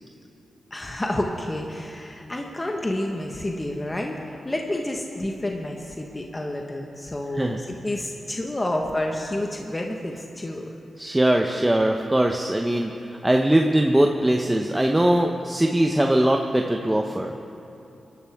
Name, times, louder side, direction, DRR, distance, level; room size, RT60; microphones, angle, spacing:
voice 1, 0.7-10.7, left 1 dB, 25° left, 1 dB, 1.4 m, -29 dB
voice 2, 11.0-17.3, right 1 dB, 15° right, 2 dB, 0.9 m, -21 dB
24.0 x 12.0 x 3.6 m, 2.9 s
cardioid pair, 60°, 0 cm